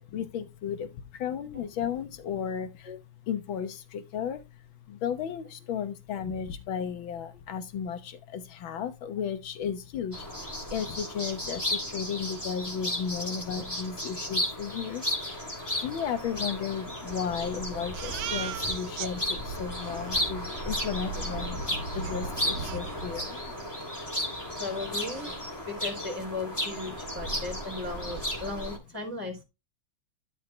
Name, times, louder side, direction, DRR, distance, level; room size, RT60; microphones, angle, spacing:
voice 1, 0.1-23.7, left 7 dB, 70° left, 1.9 m, -34 dB
sound 1, 10.1-28.8, left 1 dB, 10° left, 2.9 m, -34 dB
sound 2, 17.0-23.2, right 2 dB, 50° right, 3.6 m, -41 dB
Crying sobbing, 17.9-19.1 19.5-19.6 19.8-20.2 22.0-22.1 22.6-23.4 23.7-23.9 24.3-24.4 24.7-25.4, right 10 dB, 75° right, 0.9 m, -39 dB
voice 2, 24.5-25.3 25.7-29.4, left 3 dB, 5° right, 3.5 m, -36 dB
13.0 x 4.6 x 3.2 m
omnidirectional pair, 2.3 m